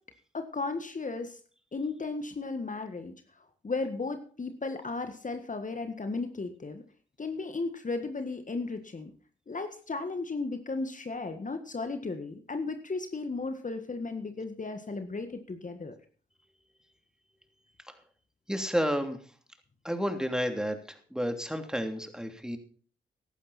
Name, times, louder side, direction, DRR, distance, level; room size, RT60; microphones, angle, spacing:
voice 1, 0.3-1.4 1.7-3.1 3.6-6.8 7.2-9.1 9.5-15.9, left 3 dB, 40° left, 8 dB, 1.7 m, -35 dB
voice 2, 18.5-19.2 19.8-22.6, equal, 5° right, 6 dB, 3.1 m, -31 dB
15.0 x 11.5 x 4.3 m, 0.42 s
hypercardioid pair, 40°, 21 cm